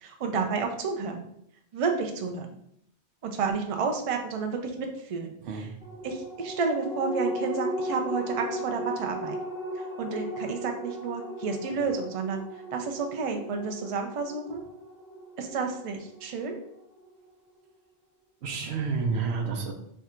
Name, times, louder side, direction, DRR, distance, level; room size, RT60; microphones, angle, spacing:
voice 1, 0.0-1.2 1.7-2.5 3.2-5.3 6.0-9.4 9.7-12.4 12.7-14.6 15.4-16.6, right 4 dB, 45° right, 4 dB, 0.4 m, -31 dB
voice 2, 5.4-6.1 18.4-19.7, right 5 dB, 75° right, 3 dB, 0.9 m, -30 dB
sound 1, 5.8-16.6 17.0-17.1, right 1 dB, 5° right, 0.7 m, -36 dB
3.5 x 2.4 x 4.3 m, 0.72 s
omnidirectional pair, 1.1 m